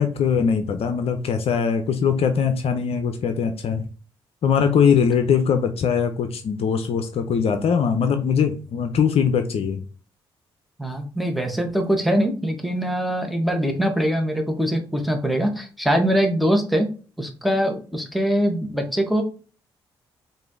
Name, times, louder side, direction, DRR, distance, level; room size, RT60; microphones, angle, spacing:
voice 1, 0.0-3.8 4.4-9.8, left 7 dB, 55° left, 7 dB, 0.6 m, -21 dB
voice 2, 10.8-16.9 17.2-19.2, equal, ahead, 3 dB, 1.2 m, -22 dB
4.9 x 2.6 x 3.6 m, 0.38 s
hypercardioid pair, 45°, 12 cm